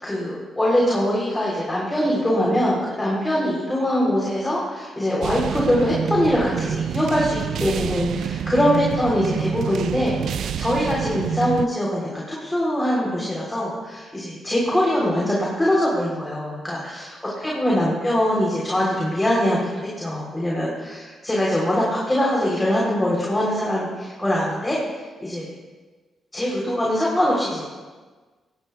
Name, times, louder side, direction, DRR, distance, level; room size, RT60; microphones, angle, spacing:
voice 1, 0.0-24.8 25.2-25.5 26.3-27.8, equal, 15° left, -5 dB, 3.7 m, -23 dB
sound 1, 5.2-11.7, right 8 dB, 75° right, 0.3 m, -27 dB
18.5 x 17.5 x 2.4 m, 1.4 s
cardioid pair, 95°, 0 cm